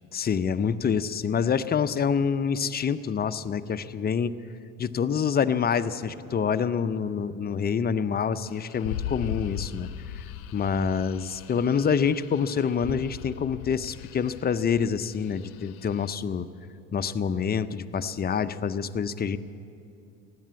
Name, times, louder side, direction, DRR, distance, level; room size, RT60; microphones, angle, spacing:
voice 1, 0.1-4.4 4.8-10.2 10.5-16.5 16.9-19.4, left 6 dB, 25° left, 12 dB, 0.5 m, -27 dB
sound 1, 8.5-16.1, left 11 dB, 85° left, 0.7 m, -39 dB
16.0 x 10.5 x 8.5 m, 2.6 s
hypercardioid pair, 70°, 42 cm